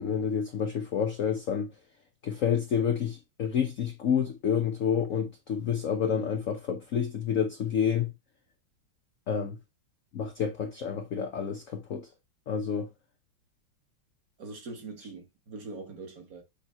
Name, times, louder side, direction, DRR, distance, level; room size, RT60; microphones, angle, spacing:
voice 1, 0.0-1.7 2.2-8.1 9.3-9.6 10.1-12.1 12.5-12.9, left 7 dB, 80° left, 0.7 m, -29 dB
voice 2, 14.4-16.4, right 3 dB, 45° right, 1.5 m, -42 dB
7.1 x 3.1 x 4.2 m
omnidirectional pair, 2.4 m